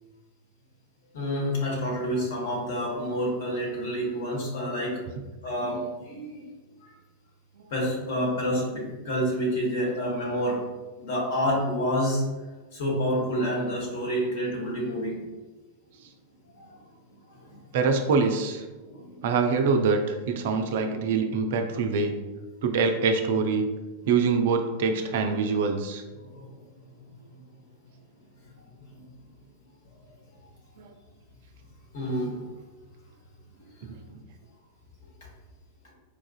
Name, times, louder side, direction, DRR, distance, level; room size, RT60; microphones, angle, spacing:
voice 1, 1.1-5.1 5.4-6.4 6.8-6.9 7.7-10.6 11.0-15.2 16.5-16.8 17.3-17.6 18.8-19.2 26.2-26.6 28.5-28.6 28.9-29.0 31.9-32.5, equal, 55° left, -3 dB, 1.1 m, -29 dB
voice 2, 17.7-18.6 19.2-22.1 22.6-23.7 24.1-26.0 30.8-30.9 33.8-34.0, right 4 dB, 55° right, 5 dB, 0.3 m, -24 dB
4.6 x 2.4 x 2.3 m, 1.2 s
figure-of-eight pair, 90°, 0 cm